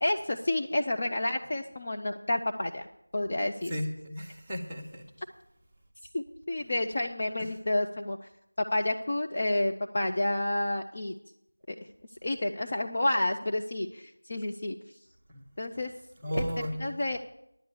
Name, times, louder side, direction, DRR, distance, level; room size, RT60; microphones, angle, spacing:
voice 1, 0.0-2.9 3.1-3.7 6.1-8.3 8.7-11.1 11.7-11.8 12.2-14.8 15.6-15.9 16.3-16.4 16.8-17.2, left 1 dB, 25° left, 2 dB, 0.4 m, -30 dB
voice 2, 3.7-5.0 7.4-7.5 15.3-15.4 16.2-16.7, equal, 5° right, -8 dB, 0.8 m, -34 dB
10.0 x 7.9 x 7.0 m, 0.82 s
figure-of-eight pair, 175°, 0 cm